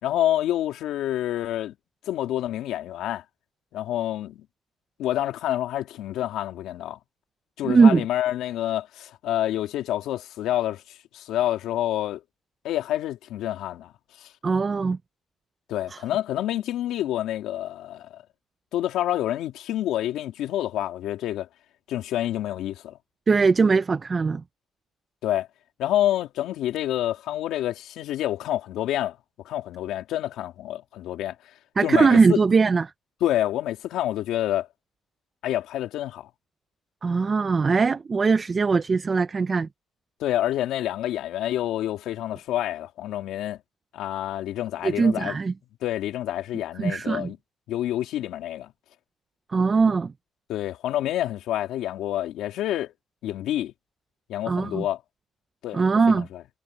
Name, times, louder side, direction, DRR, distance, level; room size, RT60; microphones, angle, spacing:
voice 1, 0.0-1.7 2.1-3.2 3.7-4.4 5.0-7.0 7.6-12.2 12.6-13.9 14.2-14.3 15.7-18.2 18.7-21.5 21.9-23.0 25.2-25.5 25.8-29.2 29.4-31.3 31.8-32.4 33.2-34.7 35.4-36.3 40.2-43.6 43.9-45.4 45.8-47.4 47.7-48.7 50.5-52.9 53.2-53.7 54.3-55.0 55.6-56.4, left 13 dB, 85° left, 3.1 m, -28 dB
voice 2, 7.6-8.0 14.4-15.0 15.9-16.0 23.3-24.4 31.8-32.8 37.0-39.7 44.8-45.5 46.8-47.3 49.5-50.1 54.5-54.8 55.7-56.3, right 4 dB, 35° right, 0.9 m, -20 dB
cardioid pair, 90°, 0 cm